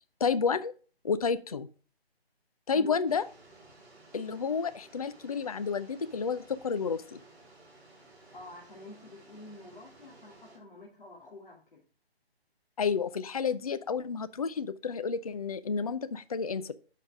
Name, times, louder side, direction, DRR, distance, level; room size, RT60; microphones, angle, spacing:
voice 1, 0.2-0.7 1.0-1.7 2.7-3.2 4.1-7.2 12.8-16.7, left 5 dB, 35° left, 14 dB, 0.5 m, -30 dB
sound 1, 3.0-10.6, right 2 dB, 10° right, 2.6 m, -56 dB
voice 2, 8.3-11.8, left 2 dB, 55° left, -4 dB, 2.7 m, -48 dB
8.8 x 6.6 x 4.8 m, 0.38 s
figure-of-eight pair, 155°, 31 cm